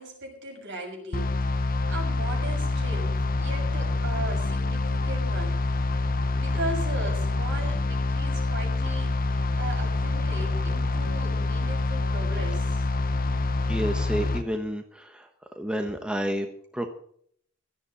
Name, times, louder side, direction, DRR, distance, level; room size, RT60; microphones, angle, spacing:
voice 1, 0.0-5.6 6.3-12.9, right 2 dB, 55° right, 1 dB, 6.4 m, -38 dB
sound 1, 1.1-14.4, left 2 dB, 40° left, 1.0 m, -26 dB
voice 2, 13.7-15.3 15.6-16.9, equal, 5° right, 5 dB, 1.0 m, -30 dB
16.5 x 12.5 x 4.2 m, 0.63 s
head